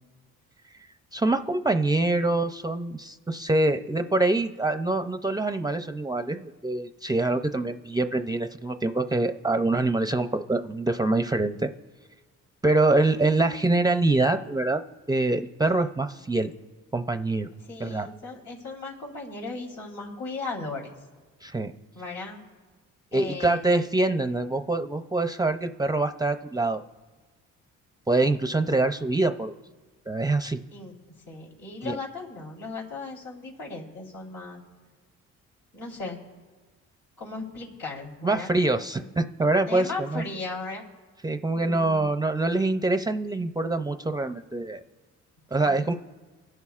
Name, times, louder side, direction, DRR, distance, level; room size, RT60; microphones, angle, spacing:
voice 1, 1.1-11.7 12.6-14.8 15.1-16.5 16.9-17.5 17.8-18.1 21.4-21.7 23.1-26.8 28.1-29.5 30.1-30.6 31.8-32.0 38.2-40.2 41.2-44.8 45.5-45.9, right 2 dB, 15° right, 7 dB, 0.5 m, -25 dB
voice 2, 17.6-20.9 21.9-22.4 23.1-23.8 28.2-28.4 30.7-30.9 31.3-34.6 35.7-36.2 37.2-38.6 39.0-39.1 39.7-40.8 41.6-42.1 45.6-46.0, left 3 dB, 75° left, -3 dB, 3.8 m, -37 dB
24.5 x 11.0 x 2.4 m, 1.4 s
cardioid pair, 90°, 30 cm